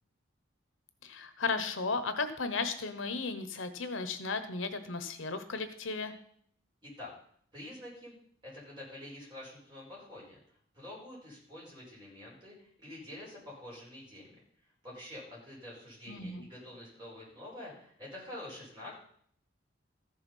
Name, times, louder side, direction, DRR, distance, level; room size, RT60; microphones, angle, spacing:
voice 1, 1.0-6.1 16.1-16.5, left 4 dB, 80° left, 9 dB, 1.1 m, -35 dB
voice 2, 7.5-8.2 8.4-10.4 10.7-14.3 14.8-19.0, left 1 dB, 20° right, -6 dB, 5.3 m, -47 dB
14.0 x 6.9 x 5.5 m, 0.63 s
head